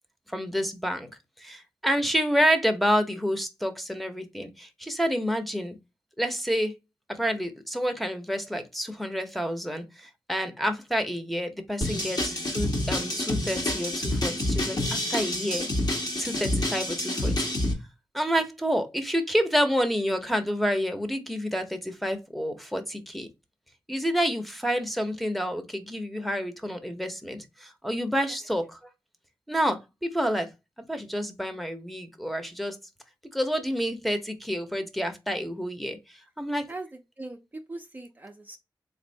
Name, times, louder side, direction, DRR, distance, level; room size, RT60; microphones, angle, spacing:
voice 1, 0.3-1.1 1.4-5.8 6.2-6.7 7.1-15.7 16.2-17.5 18.1-23.3 23.9-28.8 29.5-30.5 30.9-32.8 33.3-36.0 36.4-36.7, equal, ahead, 0.9 m, -28 dB
sound 1, 11.8-17.7, left 1 dB, 50° left, 1.5 m, -28 dB
voice 2, 27.8-28.4 36.7-38.6, right 2 dB, 20° right, 0.6 m, -41 dB
3.6 x 2.6 x 3.4 m
cardioid pair, 45°, 9 cm